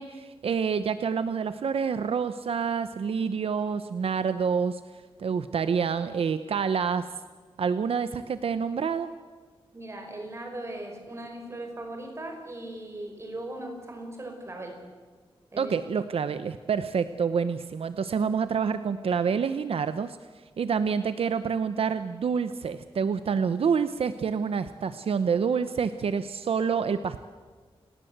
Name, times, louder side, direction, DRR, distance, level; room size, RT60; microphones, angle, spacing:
voice 1, 0.0-4.8 5.2-7.1 7.6-9.1 15.6-20.2 20.6-27.2, right 6 dB, 75° right, 11 dB, 0.9 m, -27 dB
voice 2, 9.7-14.8 15.5-15.7, right 1 dB, 30° right, 3 dB, 5.6 m, -38 dB
29.0 x 19.0 x 8.1 m, 1.4 s
wide cardioid pair, 170°, 10 cm